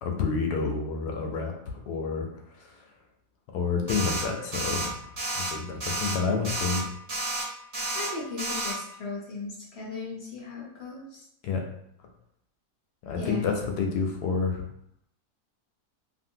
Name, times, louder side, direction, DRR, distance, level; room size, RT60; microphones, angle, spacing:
voice 1, 0.0-2.3 2.6-2.9 3.5-5.1 5.3-6.9 11.4-11.6 13.0-14.6, left 5 dB, 90° left, 2 dB, 1.1 m, -29 dB
sound 1, 3.9-4.2 4.5-4.9 5.2-5.5 5.8-6.2 6.4-6.8 7.1-7.4 7.7-8.1 8.4-8.7, right 2 dB, 45° right, 1.2 m, -31 dB
voice 2, 7.9-11.2 13.2-13.4, left 4 dB, 55° left, -4 dB, 0.7 m, -37 dB
2.9 x 2.6 x 2.7 m, 0.75 s
omnidirectional pair, 1.7 m